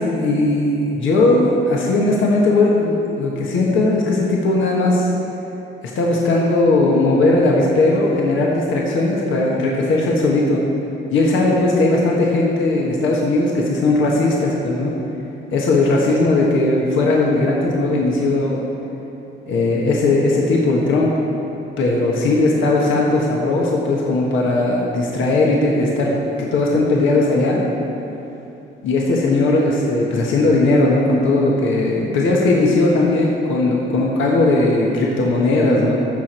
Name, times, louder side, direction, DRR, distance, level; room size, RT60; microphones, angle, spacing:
voice 1, 0.0-5.1 5.9-10.6 11.1-14.9 15.5-18.7 19.5-21.1 21.8-27.6 28.8-35.9, left 2 dB, 80° left, -2 dB, 1.4 m, -18 dB
14.5 x 6.3 x 4.4 m, 2.8 s
cardioid pair, 90°, 20 cm